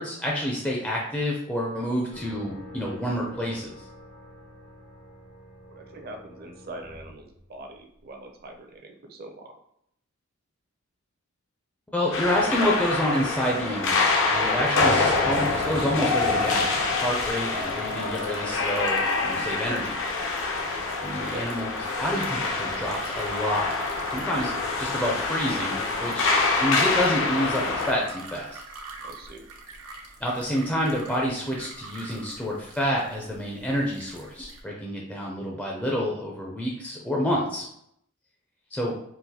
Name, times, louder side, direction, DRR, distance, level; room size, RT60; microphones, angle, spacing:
voice 1, 0.0-3.7 11.9-14.0 14.3-16.7 17.0-20.0 21.0-23.7 24.1-24.5 24.8-26.3 26.6-28.6 30.2-37.7 38.7-38.9, equal, 5° left, -3 dB, 0.4 m, -28 dB
sound 1, 2.1-8.0, equal, 80° left, 1.4 m, -47 dB
voice 2, 5.7-9.5 14.6-14.7 19.3-19.6 21.2-21.5 29.0-29.4, right 2 dB, 45° right, 4 dB, 0.5 m, -42 dB
sound 2, 12.1-27.9, left 3 dB, 60° left, 0.6 m, -26 dB
sound 3, 15.0-34.6, right 3 dB, 85° right, 0.6 m, -44 dB
3.8 x 2.5 x 2.8 m, 0.73 s
head